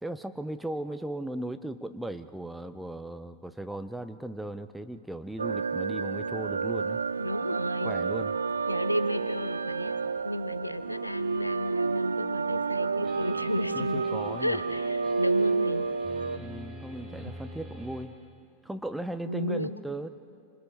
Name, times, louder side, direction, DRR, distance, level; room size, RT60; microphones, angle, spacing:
voice 1, 0.0-7.0 7.8-8.3 13.7-14.6 16.4-18.2 18.6-20.1, right 1 dB, 5° right, 10 dB, 0.9 m, -37 dB
sound 1, 5.4-16.4, right 4 dB, 75° right, 0.5 m, -30 dB
voice 2, 7.2-7.9 8.7-10.0 10.2-15.9 19.3-19.7, left 1 dB, 90° left, 13 dB, 0.9 m, -33 dB
sound 2, 13.0-18.0, equal, 25° right, 4.8 m, -45 dB
28.0 x 26.0 x 5.5 m, 2.5 s
figure-of-eight pair, 90°, 0 cm